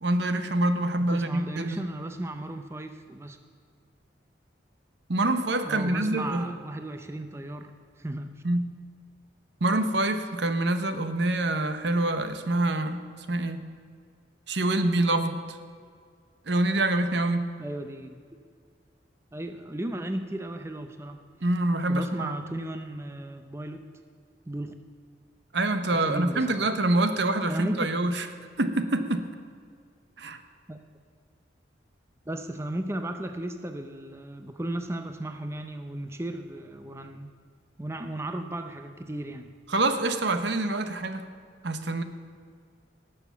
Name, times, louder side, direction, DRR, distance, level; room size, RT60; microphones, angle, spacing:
voice 1, 0.0-1.9 5.1-6.5 8.4-8.6 9.6-13.0 13.3-13.6 14.5-15.4 16.5-17.4 21.4-22.3 22.6-22.7 25.5-28.3 28.6-29.3 30.2-30.4 39.7-41.2 41.6-42.0, right 2 dB, 70° right, 9 dB, 0.9 m, -26 dB
voice 2, 1.0-3.4 5.6-8.4 17.6-18.2 19.3-21.2 21.9-23.8 24.5-24.7 25.9-26.7 27.4-27.9 30.7-30.8 32.3-37.3 37.8-39.5, right 1 dB, 15° right, 7 dB, 0.5 m, -35 dB
19.0 x 6.8 x 7.0 m, 2.1 s
head